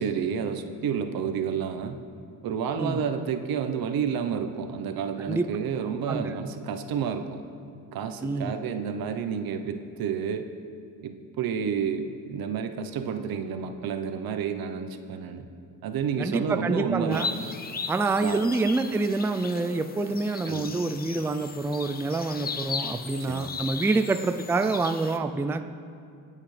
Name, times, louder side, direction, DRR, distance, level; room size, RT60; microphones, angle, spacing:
voice 1, 0.0-2.0 2.4-7.4 7.9-10.5 11.0-15.4 15.8-17.3 18.2-18.4 20.5-20.8 23.2-23.5, right 7 dB, 70° right, 8 dB, 0.9 m, -30 dB
voice 2, 8.2-8.5 16.2-17.3 17.9-25.7, right 3 dB, 5° right, 9 dB, 0.3 m, -27 dB
sound 1, 17.1-25.2, left 5 dB, 25° left, 0.7 m, -37 dB
22.5 x 8.7 x 3.3 m, 2.4 s
cardioid pair, 100°, 37 cm